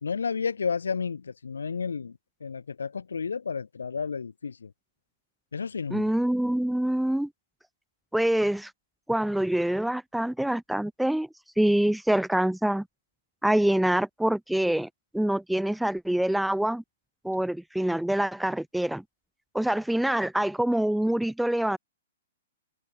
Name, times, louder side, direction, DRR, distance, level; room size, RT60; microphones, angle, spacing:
voice 1, 0.0-4.7 5.5-6.1, left 5 dB, 75° left, 1.6 m, -32 dB
voice 2, 5.9-7.3 8.1-8.7 9.1-11.3 11.6-12.9 13.4-14.9 15.1-16.8 17.2-19.0 19.5-21.8, right 1 dB, ahead, 0.4 m, -25 dB
open air
figure-of-eight pair, 120°, 0 cm